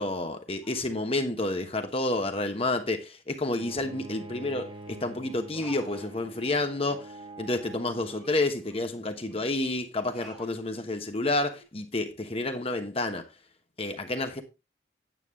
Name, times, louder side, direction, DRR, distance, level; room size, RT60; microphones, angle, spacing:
voice 1, 0.0-7.1 7.4-13.2 13.8-14.4, left 2 dB, 30° left, 1.1 m, -30 dB
sound 1, 0.6-1.0 1.8-2.1 2.4-2.7 3.7-3.9 4.3-4.4 4.7-4.9 5.5-6.5 6.8-7.0 7.5-7.6 8.1-9.5 10.1-10.6 11.2-11.6, right 1 dB, 5° right, 5.6 m, -51 dB
Bowed string instrument, 3.6-8.6, right 2 dB, 25° right, 0.8 m, -46 dB
9.2 x 8.0 x 3.5 m
head